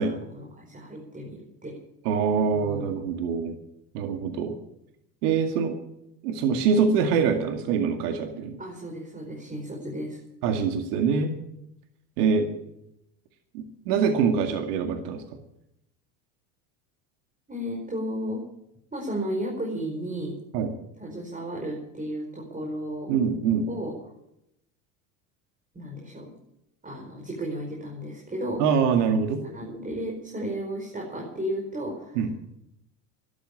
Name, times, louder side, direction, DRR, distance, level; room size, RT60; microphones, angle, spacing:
voice 1, 0.0-1.7 2.5-2.9 8.6-10.2 17.5-18.4 18.9-20.3 21.0-23.1 23.7-23.9 25.7-26.3 26.8-28.6 29.4-32.2, equal, 15° right, -1 dB, 5.1 m, -34 dB
voice 2, 2.0-3.6 3.9-4.6 5.2-5.8 6.2-8.6 10.4-11.3 12.2-12.6 13.5-15.2 20.5-20.7 23.1-23.7 28.6-29.4 32.2-32.3, right 6 dB, 75° right, 6 dB, 2.2 m, -24 dB
13.5 x 12.0 x 8.5 m, 0.81 s
hypercardioid pair, 90°, 47 cm